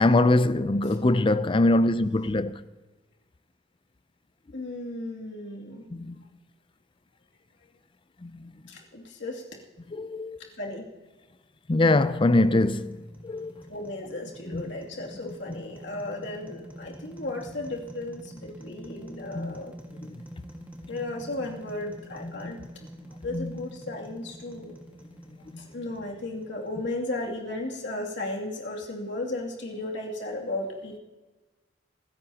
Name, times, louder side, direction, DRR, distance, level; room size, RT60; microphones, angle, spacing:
voice 1, 0.0-2.5 5.9-6.2 8.2-8.5 9.9-10.4 11.7-13.5 14.5-14.6 19.3-19.6 19.9-20.2 22.2-22.7 23.3-23.6 25.5-25.7, left 2 dB, 25° left, 0.5 m, -24 dB
voice 2, 4.5-5.9 8.7-9.4 10.6-10.9 13.7-19.7 20.9-22.6 23.2-24.8 25.6-31.0, left 2 dB, 65° left, 2.7 m, -35 dB
sound 1, 12.1-27.2, equal, 10° right, 1.8 m, -47 dB
25.0 x 13.5 x 2.9 m
head